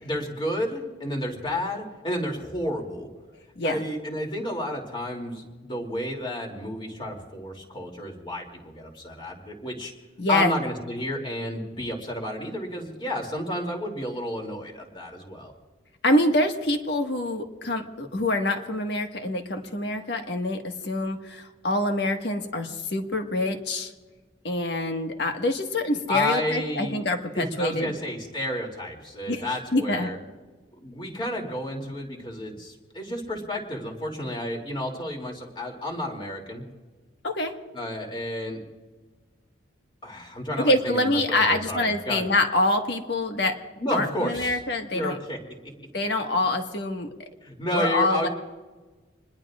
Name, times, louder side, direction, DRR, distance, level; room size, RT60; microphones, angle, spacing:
voice 1, 0.0-3.1 3.6-9.9 10.3-15.5 26.1-27.0 27.3-30.2 30.8-36.6 37.7-38.6 40.0-42.2 43.8-44.6 44.9-45.4 47.4-48.3, left 1 dB, 25° left, 1 dB, 2.9 m, -31 dB
voice 2, 10.2-10.5 16.0-23.9 24.4-27.9 29.3-29.4 29.7-30.1 37.2-37.5 40.6-43.6 43.9-45.2 45.9-47.1 47.7-48.3, left 1 dB, 60° left, 4 dB, 1.7 m, -25 dB
26.5 x 21.0 x 2.5 m, 1.3 s
head